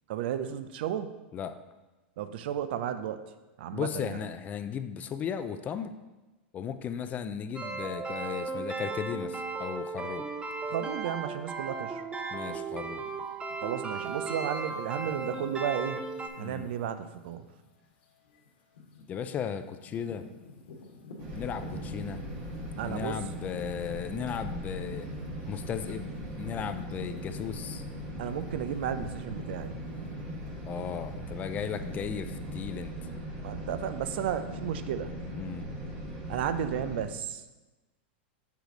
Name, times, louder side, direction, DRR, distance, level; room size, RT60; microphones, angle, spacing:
voice 1, 0.1-1.1 2.2-3.2 3.6-4.2 10.7-12.0 13.6-16.0 16.4-17.5 22.8-23.2 28.2-29.8 33.4-35.1 36.3-37.4, right 9 dB, 70° right, 11 dB, 0.5 m, -33 dB
voice 2, 3.7-5.9 6.5-10.3 12.3-13.1 16.4-16.7 19.1-20.2 21.3-22.2 22.8-25.1 25.5-27.8 30.6-32.9 35.3-35.7, left 8 dB, 25° left, 10 dB, 0.4 m, -36 dB
sound 1, 7.5-16.3, right 4 dB, 15° right, 0.6 m, -36 dB
sound 2, 12.7-27.8 28.2-32.0, left 2 dB, 70° left, 1.3 m, -53 dB
sound 3, 21.2-37.0, equal, 45° right, 1.6 m, -39 dB
6.6 x 4.9 x 3.9 m, 1.1 s
hypercardioid pair, 125°, 6 cm